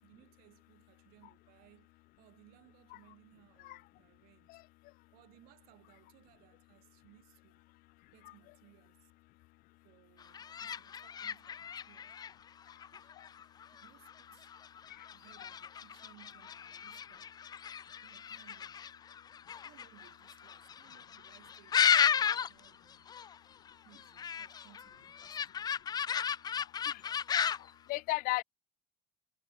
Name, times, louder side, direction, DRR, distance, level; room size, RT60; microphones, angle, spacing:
voice 1, 0.0-4.5 5.1-7.6 8.1-9.1 9.8-12.2 12.9-13.2 13.8-14.5 15.1-17.4 18.0-18.9 19.6-23.1 23.8-25.7, right 23 dB, 85° right, 7.0 m, -64 dB
sound 1, 10.2-22.7 22.9-23.4 23.7-27.7, left 8 dB, 25° left, 0.5 m, -34 dB
voice 2, 27.9-28.4, left 20 dB, 70° left, 1.0 m, -34 dB
cardioid pair, 150°, 15 cm